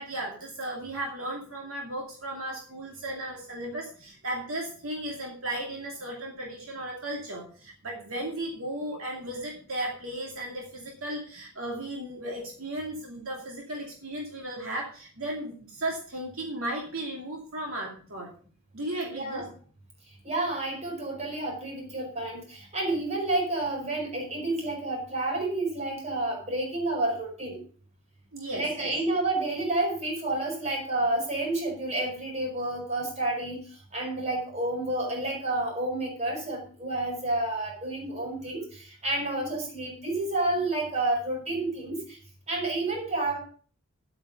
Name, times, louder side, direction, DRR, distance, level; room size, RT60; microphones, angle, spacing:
voice 1, 0.0-18.3 18.7-19.4 28.3-28.9, right 1 dB, 70° right, -1 dB, 2.6 m, -35 dB
voice 2, 19.1-19.5 20.2-27.6 28.5-33.6 33.9-42.2 42.5-43.4, right 2 dB, 30° right, 1 dB, 4.8 m, -30 dB
11.0 x 8.7 x 5.2 m, 0.42 s
head